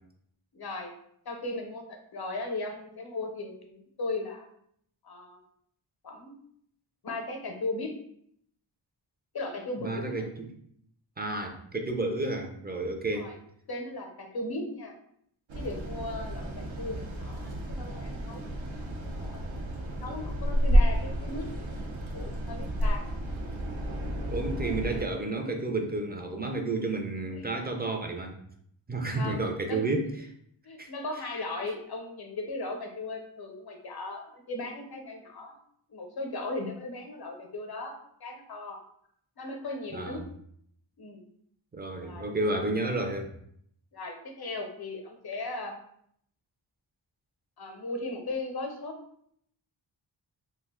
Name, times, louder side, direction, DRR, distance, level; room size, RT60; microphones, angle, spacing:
voice 1, 0.5-0.9 1.2-4.5 5.0-5.4 6.0-6.4 7.0-8.0 9.3-10.3 13.1-13.4 13.7-15.0 15.5-19.5 20.0-21.5 22.1-23.0 27.3-27.5 29.2-29.9 30.6-35.6 35.9-38.8 39.4-40.2 41.0-41.2 42.0-42.3 43.9-45.8 47.6-49.0, left 2 dB, 55° left, 4 dB, 0.7 m, -37 dB
voice 2, 9.8-10.3 11.2-13.3 19.9-20.2 24.3-28.4 28.9-30.1 30.8-30.9 39.9-40.2 41.7-43.3, right 2 dB, 20° right, 3 dB, 0.5 m, -31 dB
sound 1, 15.5-25.1, equal, 75° right, 0.7 m, -30 dB
2.4 x 2.3 x 3.5 m, 0.69 s
cardioid pair, 45°, 47 cm